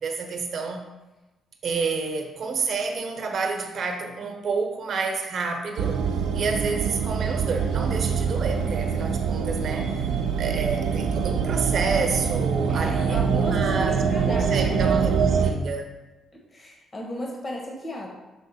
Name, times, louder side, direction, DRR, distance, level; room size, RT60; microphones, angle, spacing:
voice 1, 0.0-0.9 1.6-6.0 6.3-10.1 10.4-13.9 14.3-15.9, right 4 dB, 55° right, 3 dB, 0.9 m, -29 dB
sound 1, 5.8-15.5, right 6 dB, 85° right, 0.5 m, -24 dB
voice 2, 12.7-14.9 15.4-15.5 16.3-18.1, left 1 dB, 35° left, -1 dB, 1.3 m, -35 dB
6.3 x 3.7 x 4.2 m, 1.1 s
cardioid pair, 90°, 0 cm